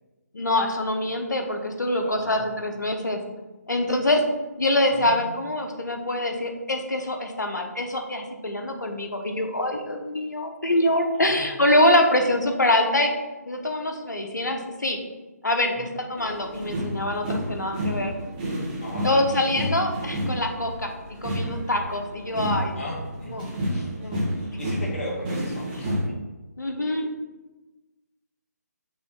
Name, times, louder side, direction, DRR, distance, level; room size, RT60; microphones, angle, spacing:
voice 1, 0.3-3.2 3.7-4.2 4.6-13.1 13.5-15.0 15.4-18.1 19.0-20.9 21.2-22.7 23.3-23.5 24.0-24.2 26.6-27.1, left 1 dB, 85° left, 4 dB, 1.0 m, -24 dB
voice 2, 2.0-2.5 4.9-5.4 11.1-11.5 15.7-15.9 18.8-19.2 22.7-23.9 24.3-26.0, left 1 dB, 50° left, -3 dB, 1.7 m, -37 dB
sound 1, 16.2-26.0, equal, 30° right, 1.5 m, -30 dB
6.1 x 3.2 x 5.4 m, 1.1 s
figure-of-eight pair, 150°, 9 cm